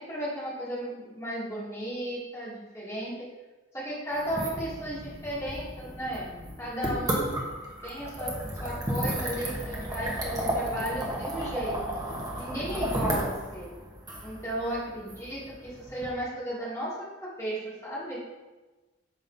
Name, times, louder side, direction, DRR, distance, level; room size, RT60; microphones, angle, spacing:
voice 1, 0.0-3.3 3.7-6.3 6.6-7.4 7.8-8.3 8.6-11.8 12.3-13.7 14.2-18.2, right 1 dB, 15° left, -8 dB, 2.3 m, -34 dB
sound 1, 4.2-16.1, right 1 dB, 20° right, 1.1 m, -33 dB
9.1 x 6.3 x 2.7 m, 1.2 s
head